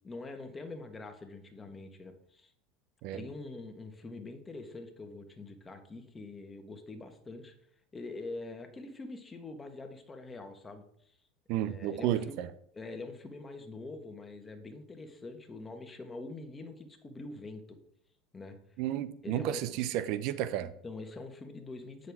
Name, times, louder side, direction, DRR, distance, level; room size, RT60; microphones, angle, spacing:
voice 1, 0.0-2.5 3.1-7.5 7.9-10.8 11.6-12.4 12.7-17.8 18.3-18.6 19.2-19.8 20.6-22.1, left 3 dB, 20° left, 1.3 m, -44 dB
voice 2, 11.5-12.5 18.8-20.7, right 12 dB, 60° right, 0.5 m, -32 dB
8.8 x 6.4 x 3.5 m
supercardioid pair, 105°, 0 cm